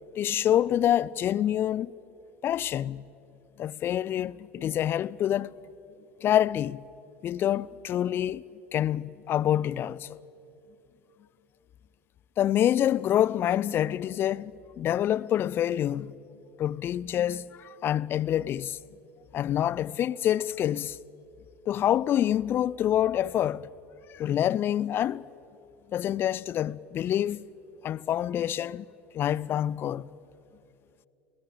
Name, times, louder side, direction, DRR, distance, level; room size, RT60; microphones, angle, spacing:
voice 1, 0.2-1.9 2.4-3.1 3.6-5.5 6.2-6.8 7.2-8.4 8.7-10.2 12.4-16.1 16.6-18.8 19.3-21.0 21.7-23.7 24.1-25.2 25.9-27.5 27.8-28.9 29.1-30.1, left 11 dB, 35° left, 0.5 m, -27 dB
27.0 x 17.0 x 8.8 m
figure-of-eight pair, 70°, 7 cm